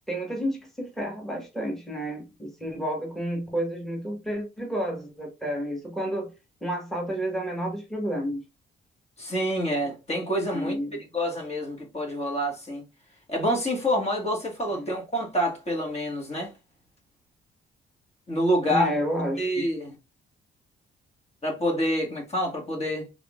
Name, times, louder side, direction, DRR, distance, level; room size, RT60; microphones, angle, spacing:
voice 1, 0.1-6.3 6.6-8.4 10.5-11.0 14.7-14.9 18.7-19.7, equal, ahead, 1.4 m, -30 dB
voice 2, 9.2-10.7 11.1-12.8 13.3-16.5 18.3-18.9 19.4-19.9 21.4-23.0, equal, 30° left, 1.7 m, -27 dB
3.7 x 3.5 x 2.4 m
cardioid pair, 90°, 20 cm